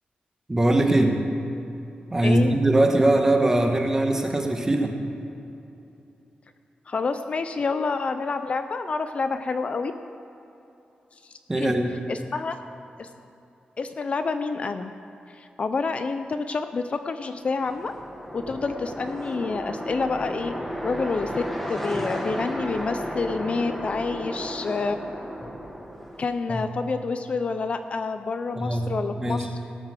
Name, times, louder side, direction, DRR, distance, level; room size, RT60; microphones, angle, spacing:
voice 1, 0.5-1.2 2.1-4.9 11.5-11.9 26.5-26.6 28.6-28.9 29.2-29.5, right 1 dB, 15° right, 3 dB, 1.2 m, -21 dB
voice 2, 2.2-2.6 6.9-9.9 11.2-11.7 12.1-12.6 13.0-13.1 13.8-14.9 15.3-17.9 18.3-20.5 20.8-21.4 21.7-25.0 26.2-29.5, left 4 dB, 40° left, 9 dB, 0.5 m, -28 dB
sound 1, 17.4-26.5, equal, 5° left, 1.5 m, -33 dB
17.5 x 7.1 x 6.7 m, 2.8 s
wide cardioid pair, 160°, 3 cm